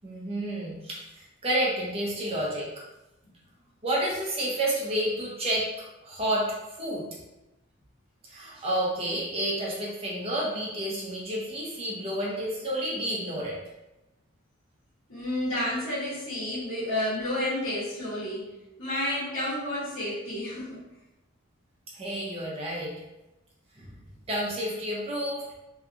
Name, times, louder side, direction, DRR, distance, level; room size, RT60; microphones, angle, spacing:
voice 1, 0.0-2.8 3.8-5.7 6.0-7.1 8.2-13.6 21.9-22.9 23.8-23.9 24.3-25.4, right 1 dB, 30° right, -4 dB, 0.6 m, -30 dB
voice 2, 15.1-18.5 18.8-20.8, left 1 dB, 85° left, -10 dB, 1.1 m, -30 dB
2.7 x 2.3 x 2.4 m, 0.98 s
head